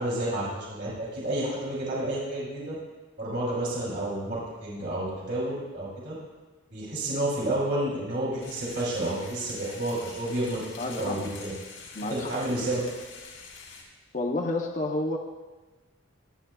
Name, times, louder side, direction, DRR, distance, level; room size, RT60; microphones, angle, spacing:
voice 1, 0.0-2.7 3.2-6.1 6.7-11.5 12.1-12.9, right 1 dB, 55° right, -5 dB, 2.7 m, -30 dB
sound 1, 8.4-13.8, left 4 dB, 85° left, 2.5 m, -45 dB
voice 2, 10.8-11.2 11.9-12.4 14.1-15.2, left 2 dB, 40° left, 2 dB, 0.6 m, -30 dB
21.5 x 8.1 x 2.3 m, 1.2 s
head